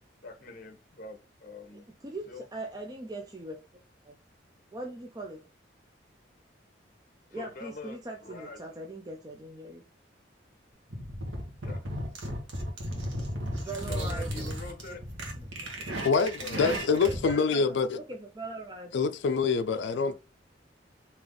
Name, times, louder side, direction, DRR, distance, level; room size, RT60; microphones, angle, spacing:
voice 1, 0.2-1.9 2.3-2.4 7.3-8.6 11.6-11.9 13.6-15.0 16.4-16.6 17.0-17.1, left 2 dB, 45° left, 0.8 m, -44 dB
voice 2, 1.7-3.6 4.0-4.2 4.7-5.4 7.3-9.8 13.5-14.6 15.4-15.7 17.1-18.9 20.0-20.1, right 2 dB, 20° right, 0.4 m, -41 dB
sound 1, 10.9-17.3, equal, 85° right, 1.2 m, -35 dB
voice 3, 16.0-18.0 18.9-20.1, left 5 dB, 70° left, 0.4 m, -26 dB
3.4 x 2.9 x 3.8 m
head